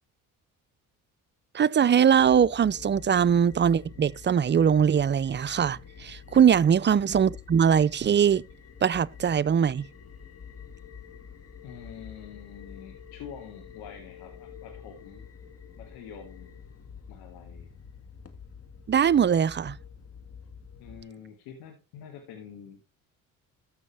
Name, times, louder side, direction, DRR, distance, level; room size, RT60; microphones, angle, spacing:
voice 1, 1.5-8.4 8.8-9.9 18.9-19.8, right 8 dB, 30° right, 0.5 m, -21 dB
sound 1, 2.0-21.0, left 6 dB, 40° left, 1.9 m, -47 dB
voice 2, 11.6-15.3 15.8-16.6 17.1-17.7 20.8-22.8, left 7 dB, 80° left, 2.0 m, -46 dB
13.5 x 6.2 x 3.4 m
supercardioid pair, 60°, 38 cm